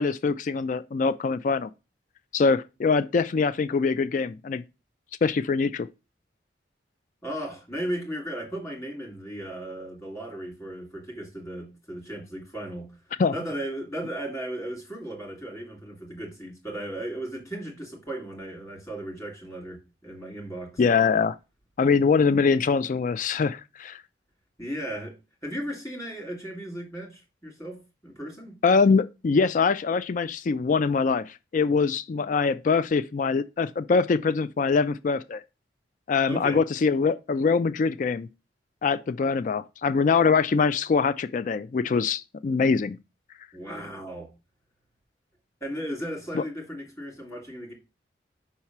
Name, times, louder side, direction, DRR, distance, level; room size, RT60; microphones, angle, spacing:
voice 1, 0.0-1.7 2.3-4.6 5.2-5.9 13.2-13.3 20.8-21.4 21.8-24.0 28.6-35.4 36.1-38.3 38.8-43.0 46.3-46.4, left 5 dB, 45° left, 0.3 m, -23 dB
voice 2, 7.2-12.9 13.3-20.8 24.6-25.2 25.4-28.6 36.3-36.6 43.5-44.3 45.6-47.7, right 1 dB, 20° left, 2.7 m, -36 dB
5.6 x 4.3 x 5.9 m
head